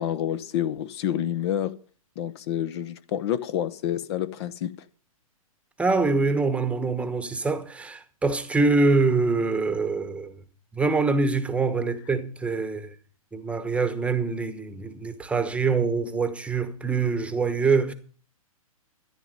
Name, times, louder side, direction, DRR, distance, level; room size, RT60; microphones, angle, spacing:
voice 1, 0.0-1.8 2.2-4.7, left 10 dB, 45° left, 0.9 m, -28 dB
voice 2, 5.8-10.4 10.7-12.9 13.3-17.9, right 4 dB, 5° right, 1.1 m, -24 dB
13.5 x 11.0 x 5.3 m
hypercardioid pair, 125°, 18 cm